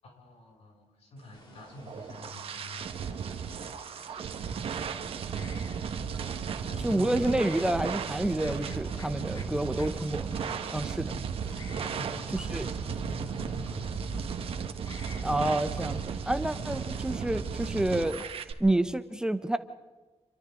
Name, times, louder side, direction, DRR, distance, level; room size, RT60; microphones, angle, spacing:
voice 1, 0.0-2.9 6.6-7.5 9.4-9.9 11.8-14.6 16.5-17.0, left 1 dB, 80° left, 0 dB, 7.1 m, -46 dB
sound 1, 1.3-17.7, left 3 dB, 45° left, 3.3 m, -54 dB
sound 2, 1.6-18.5, right 6 dB, 65° right, 1.6 m, -35 dB
Liquid, 5.6-18.8, equal, 25° left, 5.6 m, -55 dB
voice 2, 6.8-10.3 10.7-11.2 12.3-12.7 15.2-18.2 18.6-19.6, right 1 dB, 5° right, 9 dB, 0.9 m, -29 dB
28.5 x 24.0 x 3.9 m, 1.3 s
wide cardioid pair, 165°, 11 cm